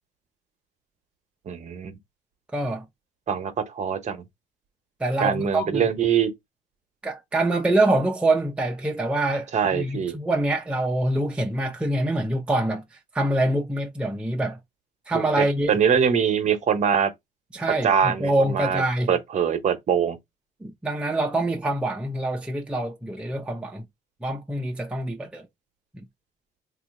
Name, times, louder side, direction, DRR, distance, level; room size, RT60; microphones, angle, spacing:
voice 1, 1.5-1.9 3.3-4.2 5.2-6.3 9.5-10.1 15.1-15.2 15.7-17.1 17.8-18.8 19.1-20.2, right 7 dB, 45° right, 0.9 m, -23 dB
voice 2, 2.5-2.9 5.0-5.9 7.0-14.6 15.1-15.8 17.5-19.1 20.6-23.9 24.2-25.5 25.9-26.1, right 1 dB, 5° right, 0.5 m, -25 dB
2.8 x 2.3 x 4.2 m
cardioid pair, 110°, 17 cm